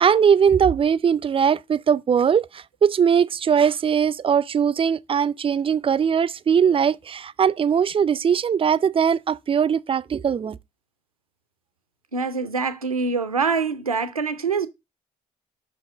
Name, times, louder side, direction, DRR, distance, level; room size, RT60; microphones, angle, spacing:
voice 1, 0.0-10.6, right 7 dB, 30° right, 0.5 m, -20 dB
voice 2, 12.1-14.7, right 5 dB, 90° right, 0.6 m, -24 dB
5.9 x 5.8 x 7.1 m
figure-of-eight pair, 40°, 18 cm